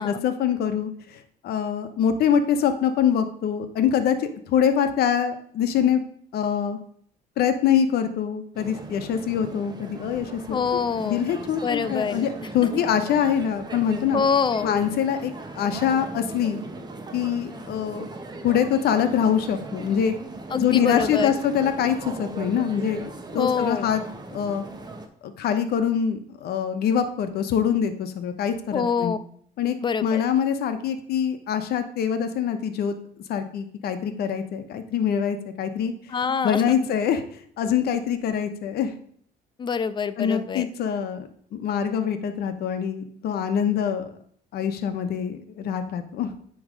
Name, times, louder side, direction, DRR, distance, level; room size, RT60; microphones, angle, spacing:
voice 1, 0.0-6.0 6.3-6.8 7.4-10.6 11.0-14.2 14.6-16.6 17.1-18.0 18.4-20.2 20.6-23.0 23.3-24.0 24.3-24.7 25.2-29.2 29.6-29.8 30.0-32.9 33.3-35.9 36.4-38.9 40.2-44.1 44.5-46.3, left 8 dB, 70° left, 9 dB, 0.9 m, -24 dB
sound 1, 8.5-25.1, right 2 dB, 25° right, 0.9 m, -38 dB
voice 2, 10.5-11.2 11.6-12.3 12.7-12.8 14.1-14.7 20.5-21.3 23.3-23.9 28.7-29.2 29.8-30.2 36.1-36.9 39.6-40.7, left 6 dB, 30° left, 14 dB, 0.4 m, -25 dB
9.5 x 3.2 x 5.1 m, 0.62 s
cardioid pair, 110°, 17 cm